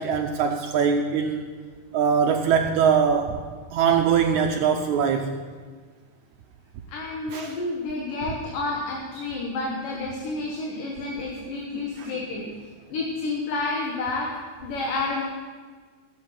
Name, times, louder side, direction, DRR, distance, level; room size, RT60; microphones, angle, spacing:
voice 1, 0.0-1.5 1.9-3.4 3.7-5.4 7.3-7.5 10.8-10.9 11.7-12.1, right 6 dB, 80° right, 4 dB, 1.7 m, -22 dB
voice 2, 6.9-12.5 12.9-14.3 14.6-15.2, left 3 dB, 70° left, -1 dB, 3.0 m, -30 dB
17.0 x 8.0 x 5.7 m, 1.5 s
omnidirectional pair, 4.1 m